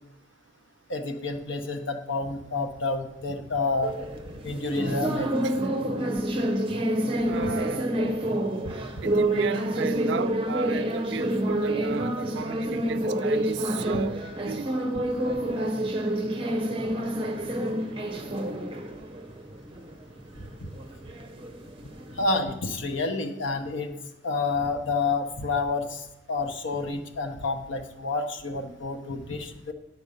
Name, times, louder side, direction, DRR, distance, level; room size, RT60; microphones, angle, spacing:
voice 1, 0.9-3.9 4.4-5.5 7.4-7.5 13.9-14.0 20.6-20.7 22.2-23.9 24.2-29.7, left 3 dB, 85° left, 1.1 m, -29 dB
sound 1, 3.8-22.2, right 1 dB, 25° right, 0.6 m, -28 dB
voice 2, 7.2-7.9 9.0-14.7, right 6 dB, 65° right, 0.3 m, -34 dB
9.6 x 4.5 x 6.8 m
head